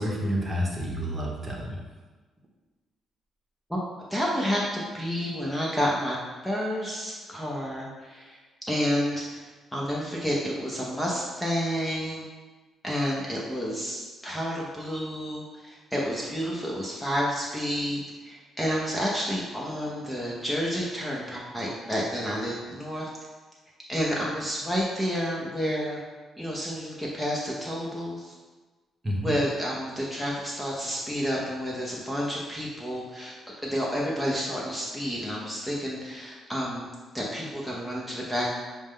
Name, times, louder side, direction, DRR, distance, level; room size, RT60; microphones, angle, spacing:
voice 1, 0.0-1.8 29.0-29.3, equal, 25° right, -2 dB, 1.0 m, -29 dB
voice 2, 4.1-6.2 6.4-8.4 8.7-9.3 9.7-12.2 12.8-23.1 23.9-26.0 26.4-28.3 29.2-33.3 33.6-36.9 37.1-38.5, equal, 5° left, -4 dB, 0.7 m, -30 dB
6.1 x 2.2 x 3.7 m, 1.3 s
cardioid pair, 90°, 0 cm